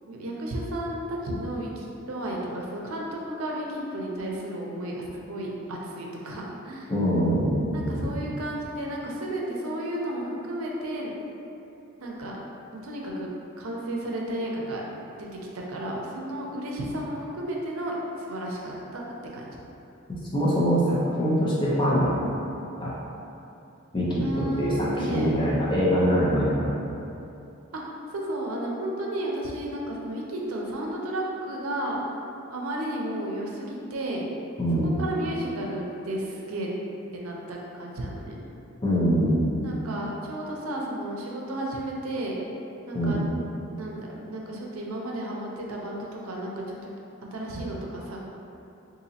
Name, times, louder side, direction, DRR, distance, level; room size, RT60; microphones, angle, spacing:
voice 1, 0.1-6.9 7.7-11.1 12.0-12.4 12.8-13.3 13.6-14.8 15.2-15.3 15.5-19.0 19.3-19.5 24.2-25.3 27.7-27.8 28.1-32.0 32.5-34.2 34.8-36.7 37.1-38.4 39.6-42.4 42.9-43.2 43.8-46.8 47.3-48.2, right 1 dB, 85° right, -2 dB, 0.6 m, -33 dB
voice 2, 6.9-8.0 20.3-22.3 22.8-23.0 23.9-26.7 34.6-34.9 38.8-39.4 42.9-43.2, equal, 25° left, -7 dB, 0.7 m, -23 dB
4.0 x 2.6 x 2.7 m, 2.8 s
head